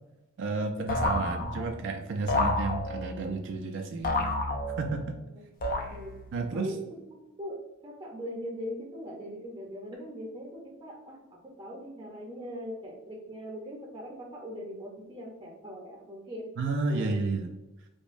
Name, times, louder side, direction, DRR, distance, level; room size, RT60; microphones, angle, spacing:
voice 1, 0.4-4.4 4.8-5.2 6.3-6.7 16.6-17.5, right 3 dB, 60° right, 4 dB, 0.4 m, -31 dB
sound 1, 0.9-1.8 2.3-3.2 4.0-5.1 5.6-6.3, left 2 dB, 40° left, 0.5 m, -30 dB
voice 2, 5.7-6.1 6.5-6.8 7.4-16.5 16.9-17.2, equal, 20° right, -4 dB, 0.6 m, -40 dB
5.0 x 2.1 x 2.5 m, 0.99 s
head